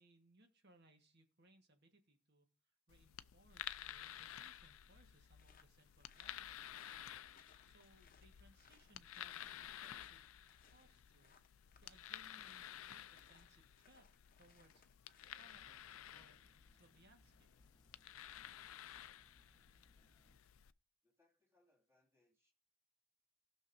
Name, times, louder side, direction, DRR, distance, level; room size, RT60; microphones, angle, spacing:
voice 1, 0.0-2.5 2.9-6.8 7.6-10.3 10.6-14.1 14.4-14.8 15.3-17.5, right 2 dB, 50° right, 1.4 m, -69 dB
sound 1, 2.9-20.7, left 11 dB, 75° left, 0.4 m, -53 dB
sound 2, 5.4-15.7, left 6 dB, 40° left, 0.8 m, -70 dB
sound 3, 15.3-20.3, left 1 dB, 20° left, 1.1 m, -72 dB
voice 2, 21.0-22.5, left 2 dB, 10° right, 2.2 m, -78 dB
19.0 x 6.4 x 2.6 m
head